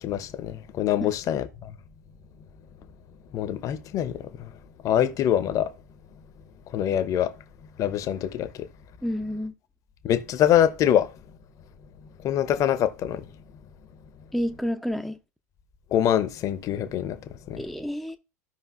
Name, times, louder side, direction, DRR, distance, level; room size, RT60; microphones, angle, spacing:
voice 1, 0.0-1.7 3.3-4.5 4.8-5.7 6.7-7.3 7.8-8.7 10.0-11.1 12.2-13.3 15.9-17.2 17.5-17.6, left 10 dB, 40° left, 0.8 m, -24 dB
voice 2, 9.0-9.5 14.3-15.2 17.6-18.2, equal, ahead, 0.6 m, -29 dB
14.5 x 5.4 x 2.5 m
figure-of-eight pair, 80°, 9 cm